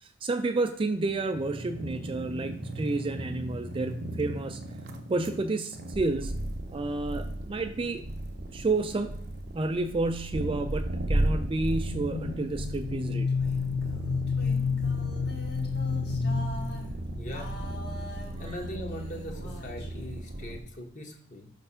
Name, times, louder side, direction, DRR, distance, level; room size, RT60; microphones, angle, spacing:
voice 1, 0.0-4.6 5.1-6.4 6.7-8.0 8.5-9.2 9.5-13.3, right 2 dB, 30° right, 8 dB, 0.3 m, -30 dB
sound 1, 1.0-20.6, right 1 dB, 55° right, 0.7 m, -35 dB
sound 2, 11.8-17.3, left 5 dB, 85° left, 0.5 m, -30 dB
sound 3, 13.3-17.0 17.3-20.2, left 1 dB, 55° left, 1.3 m, -45 dB
voice 2, 17.2-17.5 18.4-21.5, left 1 dB, 40° left, 2 dB, 1.1 m, -40 dB
5.2 x 3.3 x 5.6 m, 0.65 s
head